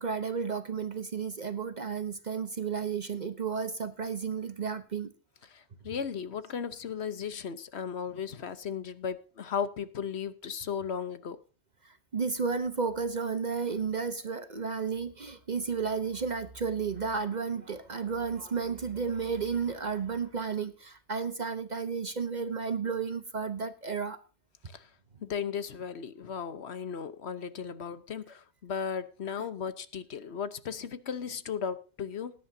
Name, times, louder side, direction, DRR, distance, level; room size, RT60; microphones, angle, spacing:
voice 1, 0.0-5.1 12.1-24.2, right 5 dB, 45° right, 1.0 m, -32 dB
voice 2, 5.5-11.4 24.7-24.8 25.2-32.3, left 7 dB, 80° left, 1.2 m, -36 dB
19.5 x 10.0 x 2.7 m
omnidirectional pair, 1.1 m